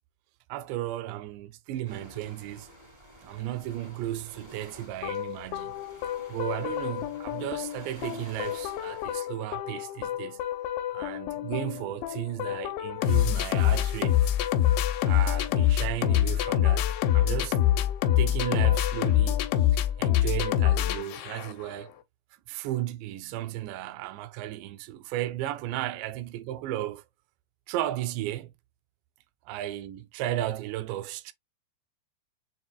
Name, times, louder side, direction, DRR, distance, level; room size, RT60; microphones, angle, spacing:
voice 1, 0.5-2.7 3.2-5.9 6.3-10.5 10.9-14.3 14.9-17.6 18.2-21.9 22.5-27.0 27.7-28.5 29.5-31.3, right 14 dB, 80° right, 2.7 m, -34 dB
sound 1, 1.8-9.2, equal, 50° right, 0.5 m, -51 dB
sound 2, 5.0-21.7, left 12 dB, 90° left, 3.0 m, -26 dB
7.3 x 2.9 x 2.3 m
omnidirectional pair, 5.2 m